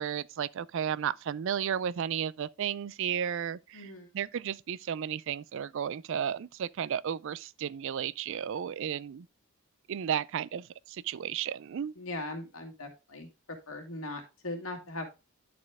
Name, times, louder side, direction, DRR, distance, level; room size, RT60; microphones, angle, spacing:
voice 1, 0.0-9.3 9.9-11.9, right 8 dB, 60° right, 0.3 m, -33 dB
voice 2, 3.7-4.1 12.0-13.3 13.7-15.0, left 2 dB, 75° left, 2.2 m, -39 dB
11.0 x 4.3 x 3.5 m
head